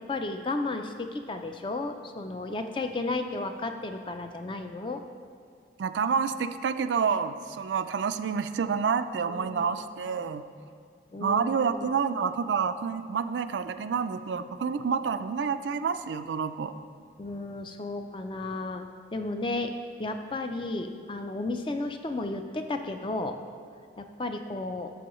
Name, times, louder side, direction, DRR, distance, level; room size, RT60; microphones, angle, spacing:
voice 1, 0.0-5.0 9.2-9.8 11.1-11.9 17.2-19.7 20.0-23.4 24.0-24.9, left 2 dB, 30° left, 6 dB, 0.4 m, -33 dB
voice 2, 5.8-10.4 11.2-16.7, right 6 dB, 85° right, 10 dB, 0.4 m, -28 dB
12.0 x 7.0 x 3.0 m, 2.2 s
head